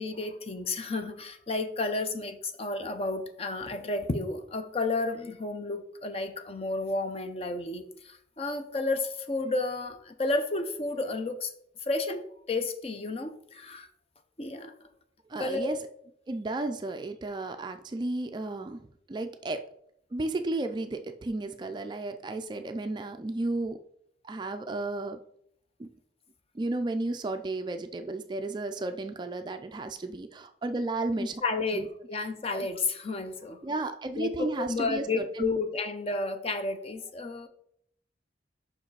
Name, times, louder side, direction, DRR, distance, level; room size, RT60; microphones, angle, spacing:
voice 1, 0.0-11.5 11.9-13.9 14.4-14.7 15.4-15.7 31.2-33.6 34.2-37.5, left 3 dB, 35° left, 8 dB, 0.6 m, -32 dB
voice 2, 15.3-15.8 16.3-18.8 19.1-19.6 20.1-23.8 24.2-25.2 25.8-25.9 26.5-31.4 31.7-31.9 32.5-32.7 33.6-35.5, right 2 dB, 25° right, 7 dB, 0.3 m, -33 dB
5.7 x 4.8 x 4.6 m, 0.72 s
head